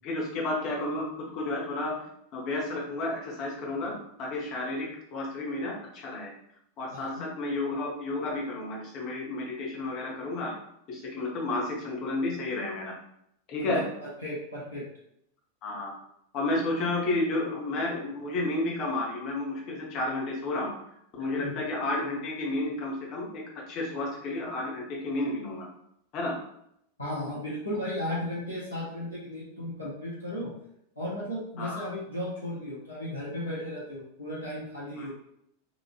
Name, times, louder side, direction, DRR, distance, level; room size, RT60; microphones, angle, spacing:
voice 1, 0.0-2.0 2.3-6.3 6.8-10.5 10.9-12.9 13.5-13.8 15.6-15.9 16.3-20.7 21.2-25.7 26.1-26.3 31.6-31.9 35.0-35.1, left 2 dB, 40° left, -2 dB, 0.8 m, -31 dB
voice 2, 6.9-7.2 13.6-14.9 21.4-21.6 27.0-30.5 31.0-35.1, left 1 dB, 85° left, -8 dB, 0.9 m, -35 dB
3.2 x 2.4 x 2.3 m, 0.74 s
figure-of-eight pair, 90°, 0 cm